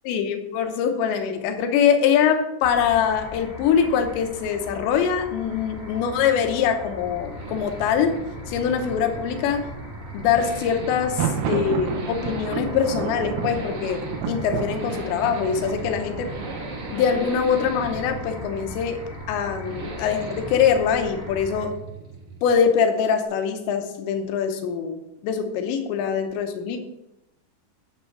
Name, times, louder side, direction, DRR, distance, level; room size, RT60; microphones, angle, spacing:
voice 1, 0.0-8.2 8.5-9.6 10.1-14.0 14.3-16.3 16.9-19.0 19.3-21.7 22.4-26.8, left 7 dB, 75° left, 6 dB, 3.0 m, -23 dB
sound 1, 2.6-21.7, left 2 dB, 15° right, 2.0 m, -40 dB
sound 2, 4.7-22.8, right 2 dB, 55° right, 3.0 m, -38 dB
Thunder, 10.9-18.7, right 7 dB, 75° right, 2.6 m, -32 dB
8.9 x 7.4 x 4.6 m, 0.88 s
omnidirectional pair, 5.7 m